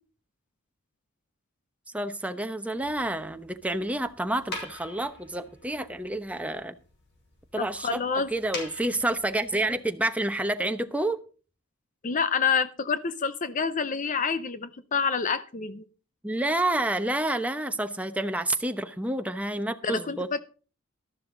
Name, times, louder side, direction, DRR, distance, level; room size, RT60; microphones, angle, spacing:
voice 1, 1.9-6.8 7.5-8.0 8.3-11.2 16.2-20.3, right 1 dB, 5° right, 7 dB, 0.9 m, -29 dB
sound 1, 2.7-9.7, left 2 dB, 55° left, 4.4 m, -45 dB
voice 2, 7.6-8.3 12.0-15.8 19.8-20.4, left 5 dB, 35° left, 13 dB, 0.6 m, -28 dB
12.5 x 12.0 x 3.9 m, 0.36 s
head